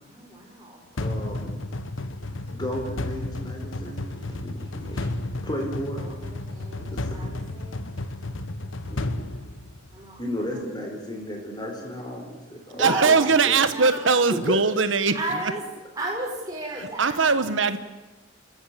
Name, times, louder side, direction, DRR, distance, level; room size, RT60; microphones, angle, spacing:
voice 1, 0.1-0.8 5.9-7.9 9.9-10.6 12.7-14.2 15.1-15.7 15.9-17.8, right 1 dB, 20° right, -2 dB, 6.8 m, -34 dB
voice 2, 0.9-1.6 2.5-5.1 5.4-6.1 6.7-7.3 8.9-9.3 10.2-13.2 13.4-13.5 14.4-14.6, equal, 20° left, 2 dB, 4.2 m, -34 dB
sound 1, 1.0-10.2, left 2 dB, 85° left, 1.2 m, -32 dB
voice 3, 12.8-15.2 15.4-15.5 16.8-17.8, right 4 dB, 75° right, 12 dB, 1.2 m, -21 dB
29.5 x 14.5 x 8.5 m, 1.1 s
head